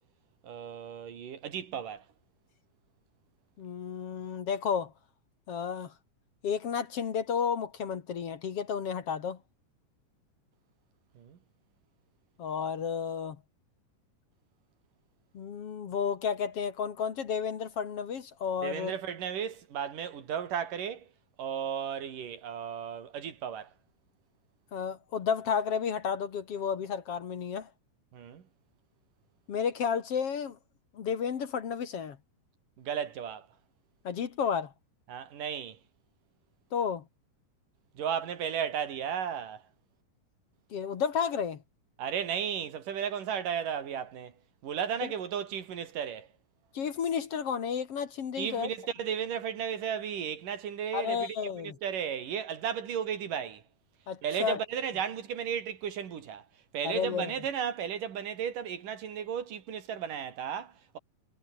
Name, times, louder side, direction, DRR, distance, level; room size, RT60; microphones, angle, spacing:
voice 1, 0.4-2.0 11.2-11.4 18.6-21.1 21.4-23.7 28.1-28.4 32.8-33.5 35.1-35.8 37.9-39.6 42.0-44.3 44.6-46.3 48.4-53.6 54.2-56.5 56.7-61.0, right 8 dB, 90° right, 4.2 m, -34 dB
voice 2, 3.6-4.9 5.5-5.9 6.4-9.4 12.4-13.4 15.3-18.9 24.7-27.7 29.5-30.6 30.9-32.2 34.0-34.7 36.7-37.0 40.7-41.6 46.7-48.7 50.9-51.8 54.1-54.6 56.8-57.3, left 7 dB, 50° left, 2.5 m, -32 dB
omnidirectional pair, 3.6 m